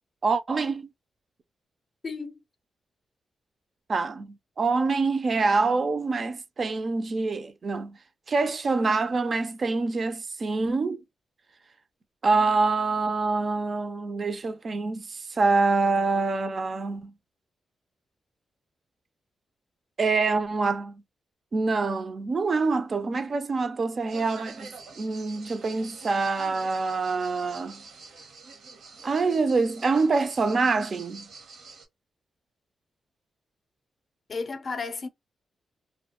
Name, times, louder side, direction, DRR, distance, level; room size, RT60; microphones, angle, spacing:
voice 1, 0.2-0.9 3.9-8.0 8.3-11.0 12.2-17.1 20.0-21.0 21.5-27.8 29.0-31.3, right 3 dB, 40° right, 0.3 m, -26 dB
voice 2, 2.0-2.4 34.3-35.1, left 4 dB, 40° left, 0.5 m, -33 dB
sound 1, 24.1-31.8, right 4 dB, 80° right, 0.8 m, -47 dB
2.3 x 2.0 x 2.8 m
cardioid pair, 110°, 0 cm